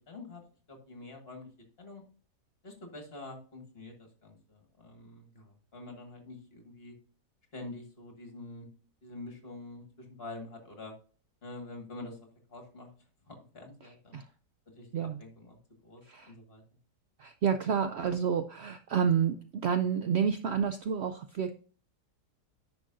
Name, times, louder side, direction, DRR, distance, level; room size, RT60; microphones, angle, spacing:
voice 1, 0.1-0.4 0.7-1.5 1.8-2.0 2.6-6.9 7.5-8.7 9.0-10.9 11.4-12.2 12.5-12.9 13.3-14.2 14.7-16.6, left 2 dB, 40° left, 3 dB, 1.9 m, -46 dB
voice 2, 17.2-19.4 19.6-21.5, right 7 dB, 85° right, 9 dB, 0.5 m, -29 dB
10.0 x 6.1 x 2.5 m, 0.40 s
omnidirectional pair, 1.7 m